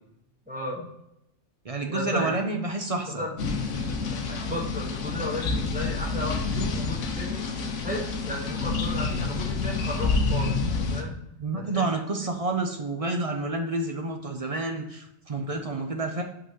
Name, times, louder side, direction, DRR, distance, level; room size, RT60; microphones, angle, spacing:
voice 1, 0.5-0.9 1.9-2.3 3.1-3.3 4.3-11.2 11.5-11.9, left 1 dB, 5° right, -4 dB, 1.3 m, -34 dB
voice 2, 1.6-3.3 11.4-16.2, right 2 dB, 40° right, 4 dB, 0.5 m, -29 dB
sound 1, 3.4-11.0, left 4 dB, 80° left, 1.2 m, -28 dB
8.1 x 3.9 x 3.1 m, 0.82 s
omnidirectional pair, 1.3 m